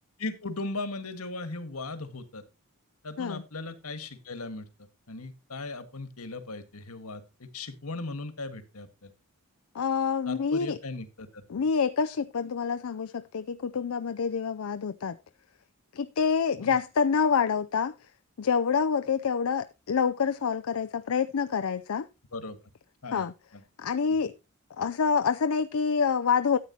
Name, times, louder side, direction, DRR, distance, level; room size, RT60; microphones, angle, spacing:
voice 1, 0.2-2.4 3.0-4.7 5.1-9.1 10.3-11.6 16.6-16.7 22.3-22.6 23.0-23.2 23.5-23.6, left 3 dB, 85° left, 1.6 m, -38 dB
voice 2, 9.8-10.8 11.5-15.2 16.0-17.9 18.4-22.1 23.1-23.3 23.8-24.3 24.8-26.6, left 6 dB, 70° left, 0.5 m, -27 dB
13.5 x 8.8 x 2.8 m
head